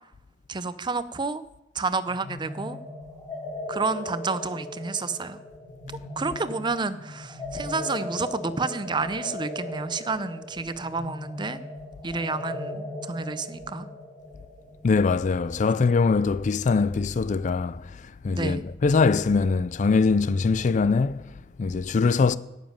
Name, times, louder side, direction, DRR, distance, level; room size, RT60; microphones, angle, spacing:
voice 1, 0.5-1.4 1.7-2.8 3.7-5.4 6.2-11.6 12.0-13.9 18.4-18.6, right 3 dB, 25° right, 0.6 m, -30 dB
sound 1, 2.1-15.6, left 1 dB, 15° left, 4.0 m, -38 dB
voice 2, 14.8-22.4, left 4 dB, 45° left, 0.4 m, -23 dB
9.9 x 7.4 x 9.0 m
head